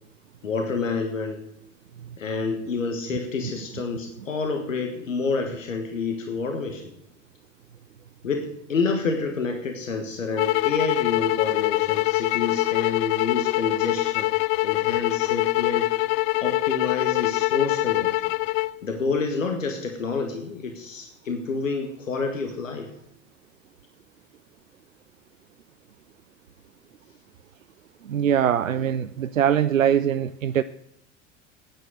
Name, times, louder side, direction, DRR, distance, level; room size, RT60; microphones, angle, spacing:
voice 1, 0.4-1.4 2.2-6.8 8.2-14.3 14.6-16.0 16.4-18.1 18.8-22.9, left 4 dB, 75° left, 4 dB, 1.6 m, -28 dB
sound 1, 10.4-18.7, left 22 dB, 35° left, 0.4 m, -24 dB
voice 2, 28.1-30.6, right 9 dB, 85° right, 14 dB, 0.5 m, -22 dB
11.0 x 9.5 x 7.8 m, 0.79 s
figure-of-eight pair, 75°, 39 cm